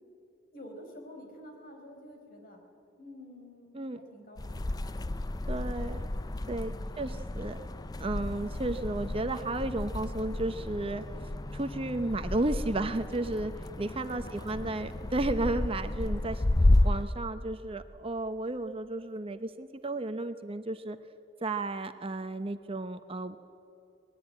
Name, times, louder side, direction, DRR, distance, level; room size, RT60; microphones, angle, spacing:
voice 1, 0.5-2.6 3.0-3.7 3.9-4.9 6.6-6.9 14.0-14.8, equal, 50° left, 3 dB, 5.0 m, -49 dB
sound 1, 4.4-17.0, left 1 dB, 20° left, 0.5 m, -31 dB
voice 2, 5.5-6.1 6.5-7.6 8.0-11.0 11.5-13.5 13.8-16.4 16.8-21.0 21.4-23.4, right 2 dB, 30° right, 9 dB, 0.7 m, -33 dB
25.0 x 20.0 x 9.0 m, 2.9 s
head